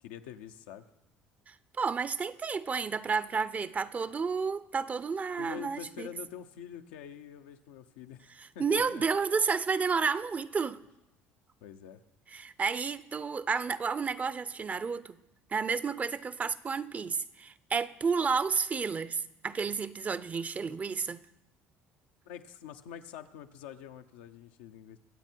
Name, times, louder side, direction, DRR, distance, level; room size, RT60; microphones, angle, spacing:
voice 1, 0.0-0.8 5.4-8.3 8.5-9.0 11.6-12.0 22.2-25.0, left 9 dB, 90° left, 0.8 m, -46 dB
voice 2, 1.5-6.1 8.4-10.8 12.3-15.2 15.5-21.2, right 5 dB, 30° right, 0.6 m, -31 dB
23.5 x 8.1 x 4.5 m
supercardioid pair, 85°, 5 cm